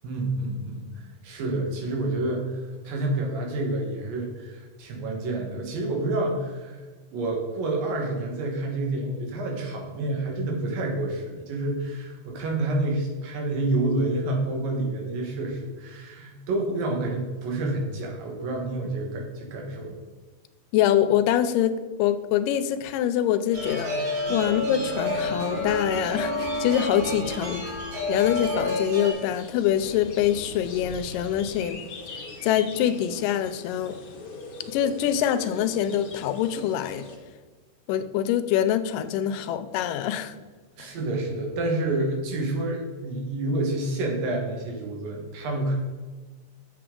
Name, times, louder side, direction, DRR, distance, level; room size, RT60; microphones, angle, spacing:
voice 1, 0.0-6.8 7.1-20.0 24.3-24.4 40.8-45.8, right 2 dB, 85° right, 1 dB, 3.2 m, -28 dB
voice 2, 20.7-27.6 28.1-31.8 32.4-34.0 34.7-37.1 37.9-40.4, left 10 dB, 85° left, 11 dB, 2.1 m, -25 dB
sound 1, 23.5-31.6, left 1 dB, 20° right, 1.3 m, -44 dB
Bwana Kumala warmup, 23.5-29.1, left 2 dB, 60° right, 3.5 m, -29 dB
sound 2, 28.3-37.2, left 3 dB, 65° left, 1.4 m, -42 dB
8.0 x 6.9 x 3.7 m, 1.4 s
omnidirectional pair, 3.9 m